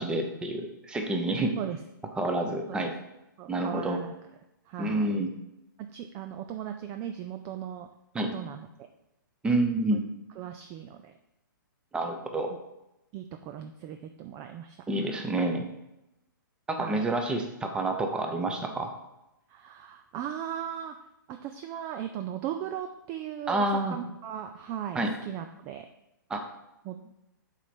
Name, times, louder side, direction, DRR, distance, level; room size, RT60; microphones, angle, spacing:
voice 1, 0.0-1.5 2.2-2.9 3.5-4.0 4.8-5.3 8.1-8.3 9.4-10.0 11.9-12.5 14.9-15.7 16.7-18.9 23.5-24.0 24.9-25.1 26.3-26.4, right 2 dB, 10° right, 4 dB, 0.8 m, -28 dB
voice 2, 3.4-4.1 4.7-5.1 5.8-7.9 8.3-8.9 10.4-11.1 12.5-12.6 13.1-15.2 16.8-17.1 19.5-21.0 21.3-25.9 26.8-27.0, right 10 dB, 25° right, 7 dB, 0.4 m, -38 dB
7.3 x 4.1 x 5.2 m, 0.91 s
hypercardioid pair, 140°, 11 cm